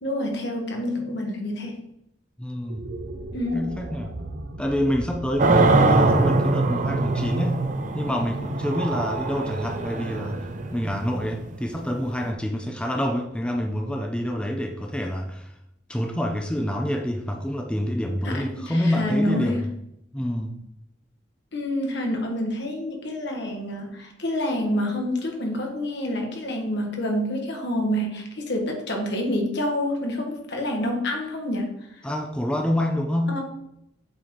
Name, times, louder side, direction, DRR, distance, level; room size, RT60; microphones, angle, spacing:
voice 1, 0.0-1.8 3.3-3.6 18.2-19.6 21.5-31.7 33.3-33.4, left 1 dB, 60° left, 2 dB, 1.6 m, -27 dB
voice 2, 2.4-2.8 3.5-4.1 4.6-7.7 7.9-15.5 15.9-19.7 20.1-20.6 32.0-33.4, equal, 5° left, 2 dB, 0.5 m, -27 dB
sound 1, 2.6-9.0, right 2 dB, 65° right, 0.8 m, -39 dB
sound 2, 5.4-12.3, right 3 dB, 40° right, 0.5 m, -23 dB
7.7 x 4.4 x 3.7 m, 0.81 s
head